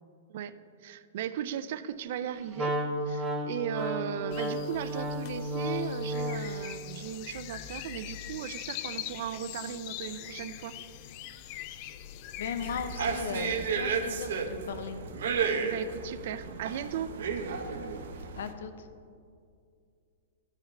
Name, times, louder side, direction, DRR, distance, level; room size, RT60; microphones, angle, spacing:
voice 1, 0.8-2.8 3.1-10.8 15.6-17.1, right 10 dB, 55° right, 13 dB, 0.4 m, -37 dB
Wind instrument woodwind instrument, 2.6-6.6, equal, ahead, 0.7 m, -33 dB
sound 1, 4.3-13.0, left 12 dB, 40° left, 0.3 m, -42 dB
voice 2, 12.4-15.0 18.3-18.9, left 6 dB, 75° left, 9 dB, 0.6 m, -37 dB
sound 2, 12.6-18.5, right 5 dB, 75° right, 0.7 m, -33 dB
13.5 x 4.9 x 3.2 m, 2.4 s
hypercardioid pair, 155°, 0 cm